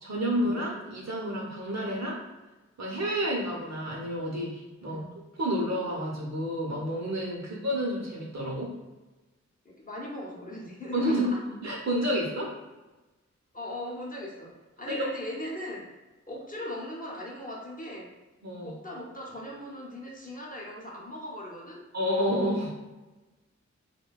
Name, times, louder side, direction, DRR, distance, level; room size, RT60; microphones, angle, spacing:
voice 1, 0.0-2.2 2.8-5.0 5.4-8.7 10.9-12.5 14.9-15.1 18.4-18.8 21.9-22.7, equal, 65° right, -2 dB, 0.7 m, -30 dB
voice 2, 4.8-5.2 7.4-7.6 9.6-11.4 13.5-15.9 16.3-18.2 18.6-21.8, left 1 dB, 30° left, -3 dB, 0.6 m, -39 dB
2.6 x 2.2 x 2.2 m, 1.1 s
wide cardioid pair, 60°, 29 cm